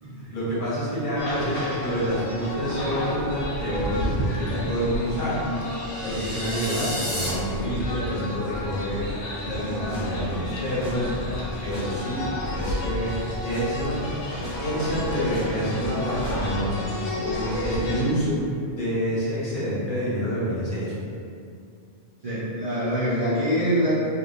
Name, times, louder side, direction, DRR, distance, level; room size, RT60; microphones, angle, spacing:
voice 1, 0.1-5.5 6.0-9.1 9.5-11.1 11.6-12.3 12.5-13.1 13.4-14.0 14.6-16.9 17.2-18.4 18.7-20.9, equal, 50° left, -9 dB, 0.8 m, -27 dB
sound 1, 1.1-18.0, left 1 dB, 85° left, 0.9 m, -31 dB
sound 2, 5.3-7.3, equal, 70° right, 1.3 m, -33 dB
sound 3, 9.5-9.7 9.9-10.0 10.4-10.6 10.8-10.9 11.3-11.5 11.7-11.8 12.2-12.4 12.6-12.7 13.1-13.3 13.5-13.6 14.0-14.2 14.4-14.5 14.9-15.4 15.8-16.3, left 1 dB, 5° right, 1.0 m, -37 dB
voice 2, 22.2-24.0, equal, 50° right, -13 dB, 0.4 m, -24 dB
2.9 x 2.1 x 2.5 m, 2.4 s
omnidirectional pair, 1.2 m